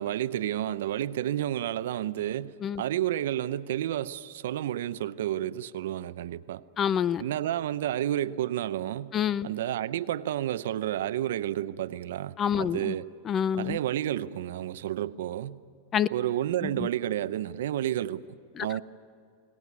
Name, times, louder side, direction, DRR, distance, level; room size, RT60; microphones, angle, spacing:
voice 1, 0.0-6.6 7.2-9.1 9.4-13.1 13.6-15.6 16.1-18.2 18.6-18.8, right 12 dB, 75° right, 0.7 m, -30 dB
voice 2, 6.8-7.2 9.1-9.5 12.4-12.9 13.2-13.8 15.9-16.1 16.6-16.7 18.6-18.7, left 8 dB, 30° left, 0.5 m, -27 dB
23.5 x 18.0 x 9.6 m
supercardioid pair, 125°, 0 cm